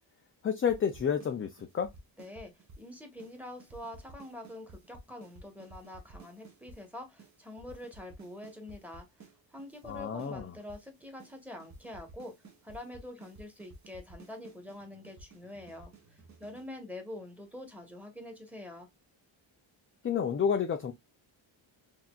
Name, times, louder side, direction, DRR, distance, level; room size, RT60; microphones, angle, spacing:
voice 1, 0.4-1.9 9.8-10.5 20.0-20.9, left 7 dB, 25° left, 0.5 m, -30 dB
sound 1, 0.7-1.3 1.6-2.9 3.2-3.3 3.6-6.8 7.2-7.3 7.6-9.3 9.6-10.9 11.2-11.3 11.6-16.7, right 2 dB, 35° right, 1.3 m, -52 dB
voice 2, 2.2-9.1 9.5-12.3 12.6-18.9, left 1 dB, 5° right, 1.4 m, -45 dB
4.3 x 2.8 x 2.4 m
cardioid pair, 90°, 47 cm